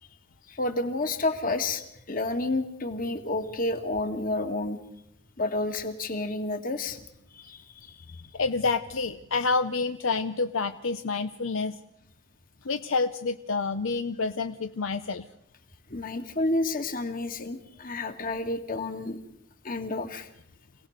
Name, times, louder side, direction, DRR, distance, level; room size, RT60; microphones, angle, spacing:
voice 1, 0.5-1.8 2.1-4.8 5.4-7.0 7.3-7.9 15.9-19.2 19.6-20.3, left 2 dB, 45° left, 7 dB, 2.1 m, -30 dB
voice 2, 8.3-11.8 12.6-15.3, left 4 dB, 85° left, 9 dB, 0.8 m, -28 dB
26.5 x 18.0 x 6.6 m, 0.78 s
head